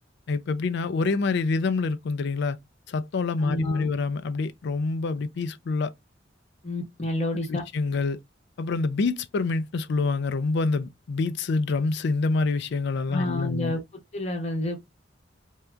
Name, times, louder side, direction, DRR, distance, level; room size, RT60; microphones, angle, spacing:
voice 1, 0.3-2.6 2.9-5.9 7.5-8.2 8.6-13.7, left 3 dB, 60° left, 0.4 m, -26 dB
voice 2, 3.4-3.9 6.6-7.6 13.1-13.8 14.1-14.8, left 1 dB, 35° left, 0.9 m, -29 dB
2.7 x 2.3 x 3.3 m
head